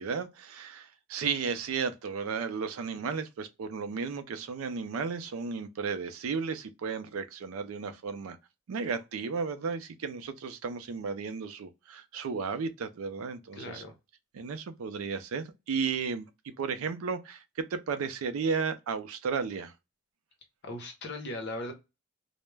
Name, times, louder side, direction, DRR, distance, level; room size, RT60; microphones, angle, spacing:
voice 1, 0.0-8.4 8.7-13.8 14.3-16.3 16.6-19.7, right 5 dB, 85° right, 0.4 m, -34 dB
voice 2, 13.6-13.9 20.6-21.7, left 1 dB, 55° left, 0.8 m, -38 dB
2.2 x 2.0 x 3.2 m
head